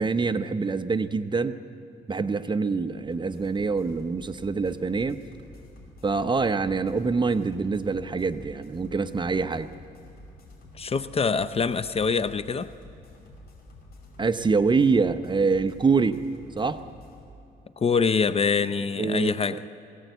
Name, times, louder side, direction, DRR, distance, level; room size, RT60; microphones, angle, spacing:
voice 1, 0.0-1.6 2.1-5.2 6.0-9.7 14.2-16.2 16.6-16.8 19.0-19.7, right 4 dB, 25° right, 10 dB, 0.8 m, -25 dB
sound 1, 3.1-17.2, left 2 dB, 65° left, 5.2 m, -49 dB
voice 2, 10.8-12.7 17.8-19.6, left 5 dB, 35° left, 13 dB, 0.6 m, -25 dB
21.0 x 17.0 x 8.1 m, 2.7 s
cardioid pair, 95°, 17 cm